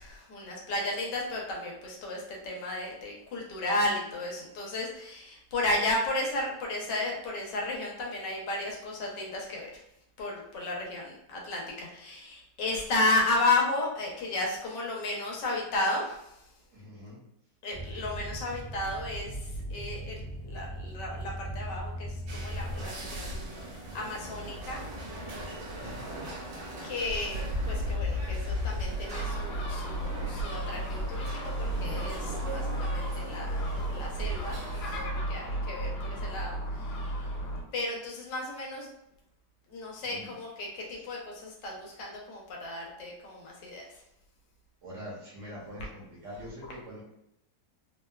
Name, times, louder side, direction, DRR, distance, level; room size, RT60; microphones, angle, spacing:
voice 1, 0.0-9.8 10.2-16.4 17.6-24.8 26.8-33.6 33.9-34.6 34.9-37.3 37.7-38.9 39.7-43.8, left 2 dB, 80° left, -1 dB, 1.4 m, -33 dB
voice 2, 16.7-17.2 25.8-26.0 40.0-40.3 40.8-41.1 44.8-47.0, equal, 55° right, -5 dB, 1.1 m, -44 dB
sound 1, 17.7-22.9, right 1 dB, 25° left, 0.9 m, -39 dB
sound 2, 22.3-35.0, equal, 90° right, 1.5 m, -37 dB
Gull seagull, 29.1-37.6, right 1 dB, 55° left, 0.9 m, -34 dB
3.5 x 2.2 x 2.2 m, 0.81 s
omnidirectional pair, 1.9 m